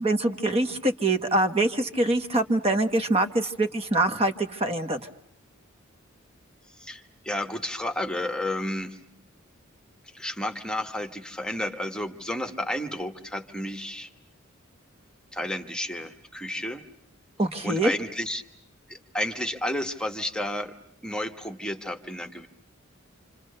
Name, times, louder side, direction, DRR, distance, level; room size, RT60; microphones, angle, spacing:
voice 1, 0.0-5.0 17.4-17.9, right 2 dB, 30° right, 7 dB, 1.3 m, -24 dB
voice 2, 6.8-9.0 10.1-14.1 15.3-16.8 17.6-18.4 18.9-20.7 21.0-22.5, left 1 dB, 5° left, 7 dB, 1.3 m, -31 dB
28.0 x 27.0 x 6.7 m, 0.75 s
head